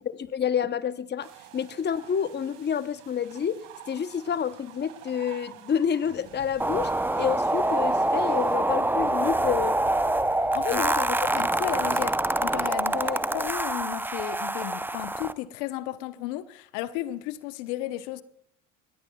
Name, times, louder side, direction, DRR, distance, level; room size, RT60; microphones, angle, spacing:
voice 1, 0.0-9.8 10.7-11.2 12.9-13.3, left 8 dB, 25° left, 0.8 m, -29 dB
sound 1, 1.2-8.6, right 12 dB, 75° right, 2.8 m, -49 dB
sound 2, 6.0-11.2, right 6 dB, 45° right, 2.5 m, -48 dB
sound 3, 6.6-15.3, right 2 dB, 5° right, 0.7 m, -26 dB
voice 2, 10.5-10.9 11.3-18.2, left 15 dB, 70° left, 0.9 m, -34 dB
25.0 x 19.5 x 2.3 m
hypercardioid pair, 65°, 39 cm